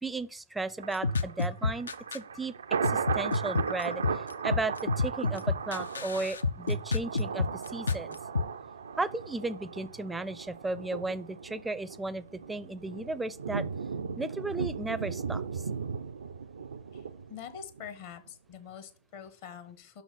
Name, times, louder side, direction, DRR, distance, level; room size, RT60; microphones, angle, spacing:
voice 1, 0.0-2.5 2.8-8.2 9.0-13.6 14.2-15.6, right 3 dB, 10° right, 0.4 m, -35 dB
Thunder, 0.8-17.9 18.3-18.4, right 6 dB, 80° right, 0.4 m, -37 dB
sound 1, 0.9-2.2 2.8-8.4, left 3 dB, 80° left, 0.4 m, -28 dB
voice 2, 17.3-20.0, left 8 dB, 55° left, 1.1 m, -45 dB
5.9 x 3.9 x 5.5 m
hypercardioid pair, 105°, 0 cm